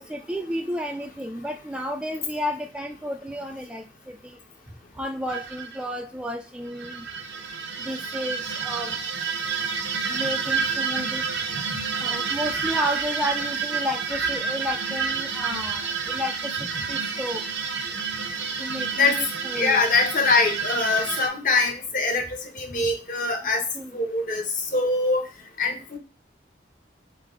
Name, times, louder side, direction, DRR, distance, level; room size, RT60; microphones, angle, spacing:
voice 1, 0.0-4.4 5.0-7.1 7.8-9.0 10.1-11.2 11.6-11.7 12.0-17.4 18.6-19.8 23.7-24.0, equal, 5° right, 3 dB, 0.3 m, -32 dB
sound 1, 5.3-5.8 6.7-21.3, right 5 dB, 85° right, 0.9 m, -29 dB
voice 2, 19.5-22.2 22.6-23.6 23.9-24.4 24.7-25.2 25.6-26.0, left 3 dB, 45° left, 3 dB, 0.9 m, -23 dB
4.1 x 3.4 x 3.6 m, 0.31 s
head